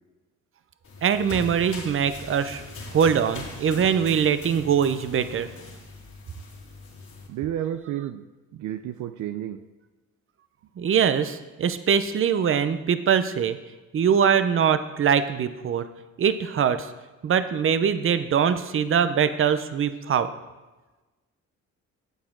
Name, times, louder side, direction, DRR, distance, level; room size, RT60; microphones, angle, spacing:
sound 1, 0.8-7.3, left 3 dB, 65° left, 4.1 m, -40 dB
voice 1, 1.0-2.6 2.9-5.5 10.8-13.6 13.9-15.8 16.2-16.9 17.2-20.3, right 7 dB, 45° right, 11 dB, 0.7 m, -22 dB
voice 2, 7.3-8.2 8.5-9.6, right 11 dB, 75° right, 10 dB, 0.6 m, -31 dB
12.0 x 8.5 x 3.8 m, 1.2 s
cardioid pair, 90°, 30 cm